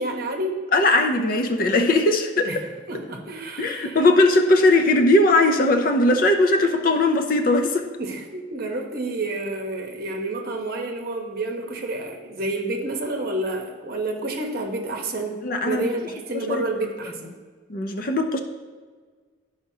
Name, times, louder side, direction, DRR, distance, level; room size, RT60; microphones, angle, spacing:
voice 1, 0.0-0.6 2.5-2.6 2.9-4.0 8.0-15.4 15.6-17.3, right 2 dB, 50° right, 2 dB, 1.0 m, -29 dB
voice 2, 0.7-2.5 3.6-7.9 15.4-15.8 16.3-16.6 17.7-18.4, left 2 dB, 45° left, 5 dB, 0.5 m, -19 dB
11.5 x 5.0 x 2.8 m, 1.5 s
head